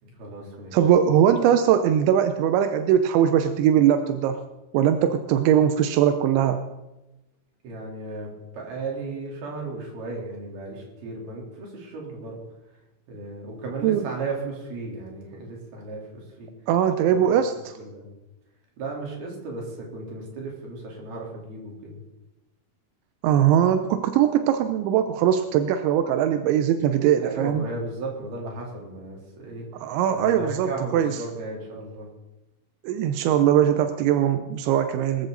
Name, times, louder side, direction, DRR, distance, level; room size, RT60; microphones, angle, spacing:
voice 1, 0.0-0.8 7.6-12.4 13.1-16.5 17.8-18.0 18.8-22.0 27.2-29.7 30.1-32.1, right 3 dB, 60° right, -2 dB, 5.4 m, -35 dB
voice 2, 0.7-4.4 4.7-6.6 13.8-14.0 16.7-17.8 23.2-27.6 29.8-31.1 32.8-35.3, right 10 dB, 85° right, 8 dB, 3.2 m, -21 dB
23.0 x 13.5 x 4.1 m, 1.0 s
omnidirectional pair, 5.2 m